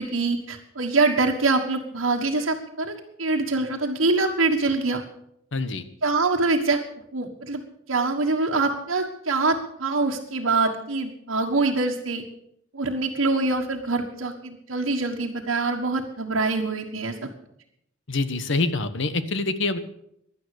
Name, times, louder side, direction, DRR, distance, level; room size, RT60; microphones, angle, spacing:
voice 1, 0.0-5.0 6.0-6.8 7.1-7.6 7.9-12.2 12.7-17.3, right 3 dB, 75° right, -1 dB, 1.5 m, -24 dB
voice 2, 5.5-5.8 18.1-19.8, left 3 dB, 65° left, 11 dB, 1.2 m, -25 dB
16.5 x 11.5 x 6.6 m, 0.75 s
head